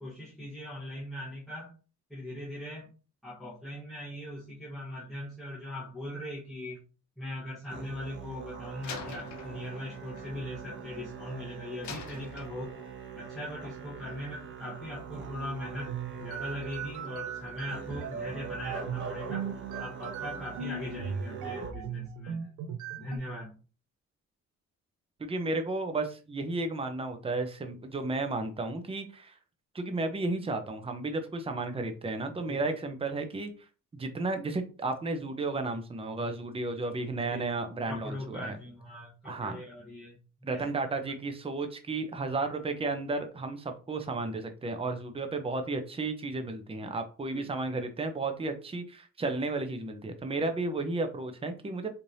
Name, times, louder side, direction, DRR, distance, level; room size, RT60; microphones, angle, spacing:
voice 1, 0.0-1.7 2.1-2.9 3.2-6.8 7.2-12.7 13.2-19.5 19.8-22.4 23.0-23.6 32.5-32.6 37.3-37.4 37.9-40.6 47.3-47.5, left 1 dB, ahead, -7 dB, 1.3 m, -40 dB
Musical instrument, 7.7-21.7, right 6 dB, 40° right, 1.5 m, -43 dB
Slam, 8.8-11.3 11.8-13.1, left 6 dB, 70° left, 0.9 m, -46 dB
sound 1, 15.7-23.2, right 6 dB, 90° right, 0.6 m, -38 dB
voice 2, 25.2-29.4 29.7-33.5 33.9-38.6 39.2-39.6 40.4-51.9, right 3 dB, 20° right, 6 dB, 0.7 m, -33 dB
4.1 x 3.3 x 2.7 m, 0.35 s
cardioid pair, 90°, 30 cm